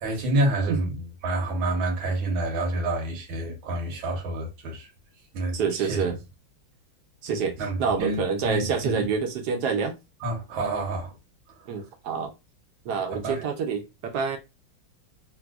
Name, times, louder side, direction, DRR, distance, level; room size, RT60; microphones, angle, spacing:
voice 1, 0.0-4.9 5.3-6.0 7.6-9.1 10.2-11.2 11.7-11.8 13.1-13.5, right 2 dB, 90° right, 1.8 m, -28 dB
voice 2, 5.5-6.2 7.2-9.9 11.7-12.3 12.9-14.4, right 6 dB, 70° right, 1.0 m, -27 dB
3.7 x 2.7 x 2.3 m
omnidirectional pair, 2.2 m